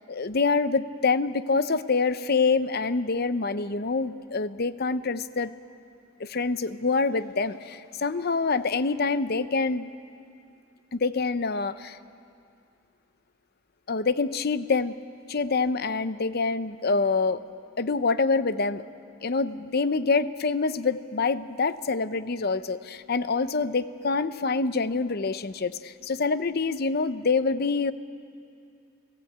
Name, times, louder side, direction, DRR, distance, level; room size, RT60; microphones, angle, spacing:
voice 1, 0.1-5.5 6.2-9.9 10.9-12.0 13.9-14.9 15.3-17.4 17.8-18.8 19.2-27.9, left 4 dB, 50° left, 13 dB, 0.7 m, -26 dB
28.5 x 18.0 x 8.7 m, 2.5 s
head